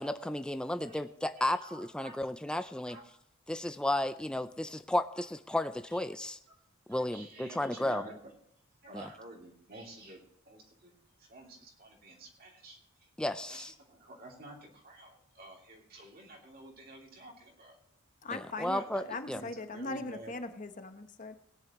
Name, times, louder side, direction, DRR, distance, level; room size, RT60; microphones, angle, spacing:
voice 1, 0.0-3.0 3.5-6.4 6.9-8.0 8.9-9.0 13.2-13.7 18.3-19.4, left 1 dB, 5° left, 9 dB, 0.3 m, -33 dB
voice 2, 1.4-3.2 3.8-4.0 5.2-5.3 5.9-6.0 6.5-6.6 6.9-8.3 8.8-10.9 11.2-13.1 13.5-17.8 18.6-20.3, right 2 dB, 40° right, -1 dB, 2.8 m, -50 dB
voice 3, 18.2-21.4, left 2 dB, 35° left, 8 dB, 0.9 m, -40 dB
19.0 x 10.0 x 3.1 m, 0.74 s
head